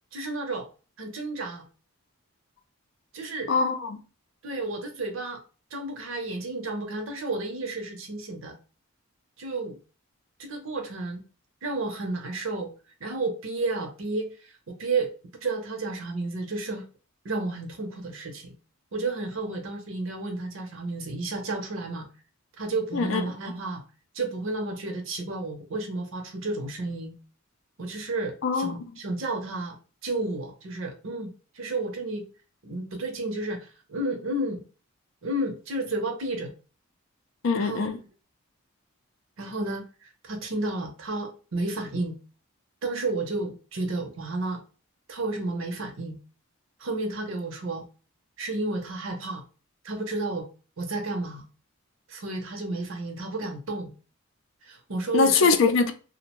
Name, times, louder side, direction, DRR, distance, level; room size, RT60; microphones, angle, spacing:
voice 1, 0.1-0.7 1.0-1.6 3.1-3.5 4.4-5.4 5.7-8.6 9.4-9.8 10.4-11.2 11.6-12.7 13.0-15.1 15.4-16.8 17.2-18.5 18.9-22.1 22.6-23.8 24.1-27.1 27.8-29.8 30.0-32.3 32.6-34.6 35.2-36.5 37.6-38.0 39.4-42.1 42.8-44.6 45.1-46.2 46.8-47.8 48.4-49.4 49.8-50.5 50.8-51.5 52.1-53.9 54.6-55.6, right 2 dB, 65° right, 0.6 m, -32 dB
voice 2, 3.5-4.0 22.9-23.2 28.4-28.7 37.4-38.0 55.1-55.9, left 4 dB, 60° left, 0.4 m, -22 dB
2.5 x 2.1 x 2.9 m
head